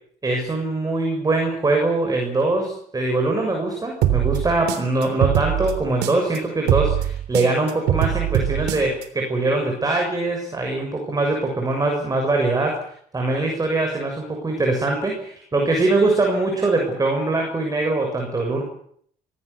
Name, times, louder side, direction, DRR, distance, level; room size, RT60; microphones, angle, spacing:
voice 1, 0.2-12.8 13.1-18.6, right 2 dB, 20° right, 2 dB, 6.9 m, -22 dB
sound 1, 4.0-6.4 6.7-9.0, right 12 dB, 80° right, 3.4 m, -22 dB
24.5 x 17.0 x 8.3 m, 0.64 s
cardioid pair, 110°, 17 cm